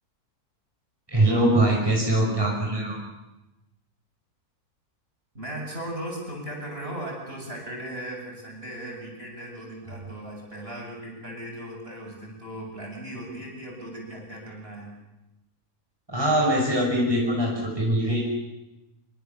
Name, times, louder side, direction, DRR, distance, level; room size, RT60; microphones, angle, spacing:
voice 1, 1.1-3.0 16.1-18.2, right 1 dB, 15° right, -3 dB, 6.0 m, -22 dB
voice 2, 5.3-14.9, right 1 dB, 40° right, -1 dB, 8.0 m, -37 dB
26.5 x 24.5 x 7.1 m, 0.99 s
omnidirectional pair, 1.6 m